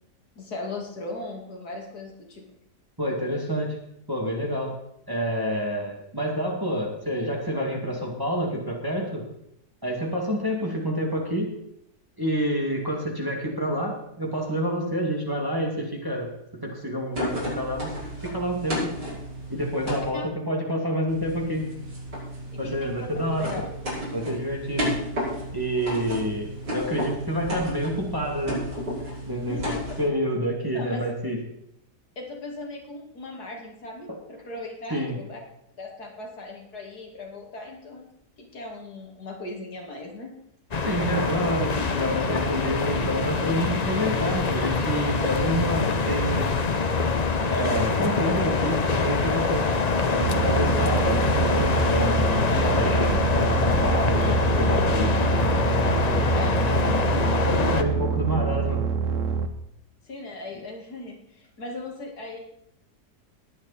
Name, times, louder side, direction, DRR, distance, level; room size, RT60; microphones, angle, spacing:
voice 1, 0.4-2.5 19.9-20.3 22.5-23.1 23.4-23.6 29.5-29.8 30.7-31.1 32.2-35.4 35.8-38.1 38.4-40.3 56.3-57.0 60.1-62.4, left 2 dB, 65° left, 1 dB, 2.7 m, -37 dB
voice 2, 3.0-3.8 4.1-4.7 5.1-9.2 9.8-11.5 12.2-16.3 16.6-17.9 18.2-18.9 19.5-20.2 20.5-21.7 22.6-23.7 24.1-24.9 25.5-28.6 29.3-29.6 30.0-31.4 34.9-35.2 40.9-46.6 47.4-49.7 50.0-55.1 57.4-58.8, equal, 15° right, -1 dB, 2.4 m, -28 dB
sound 1, 17.1-20.1 21.1-30.1, equal, 85° right, 6.5 m, -33 dB
sound 2, 40.7-57.8, left 4 dB, 35° left, 0.6 m, -24 dB
sound 3, 50.2-59.5, right 6 dB, 55° right, 1.3 m, -26 dB
20.0 x 8.7 x 4.3 m, 0.76 s
omnidirectional pair, 1.8 m